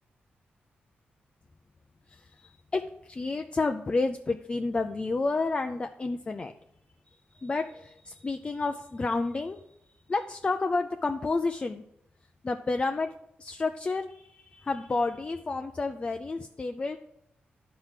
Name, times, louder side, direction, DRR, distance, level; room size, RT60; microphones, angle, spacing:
voice 1, 2.1-6.5 7.3-9.6 10.1-11.8 12.4-13.1 13.4-17.0, left 3 dB, 30° left, 6 dB, 0.4 m, -30 dB
10.5 x 4.6 x 5.8 m, 0.77 s
cardioid pair, 100°, 4 cm